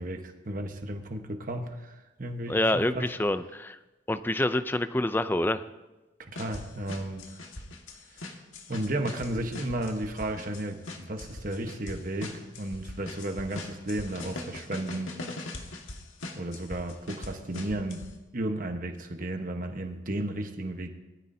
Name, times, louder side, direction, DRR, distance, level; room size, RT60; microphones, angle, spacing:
voice 1, 0.0-3.1 6.2-7.5 8.1-8.4 8.7-15.1 16.4-18.0 18.3-20.9, right 1 dB, 45° right, 5 dB, 1.2 m, -34 dB
voice 2, 2.5-3.8 4.1-5.6, left 1 dB, 10° left, 12 dB, 0.4 m, -27 dB
sound 1, 6.4-18.1, left 2 dB, 85° left, 1.7 m, -40 dB
21.0 x 13.5 x 2.8 m, 1.1 s
head